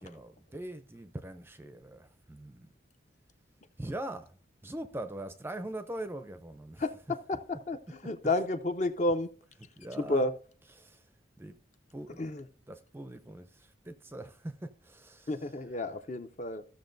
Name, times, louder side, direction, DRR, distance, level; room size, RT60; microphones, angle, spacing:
voice 1, 0.0-2.7 3.8-4.3 4.6-6.8 9.8-10.3 10.8-11.0 11.4-11.6 11.9-12.4 12.7-15.3, right 1 dB, 10° right, 0.5 m, -42 dB
voice 2, 6.8-9.3 10.0-10.3 12.2-12.4 15.3-16.6, left 2 dB, 35° left, 0.5 m, -31 dB
15.0 x 6.6 x 2.6 m
head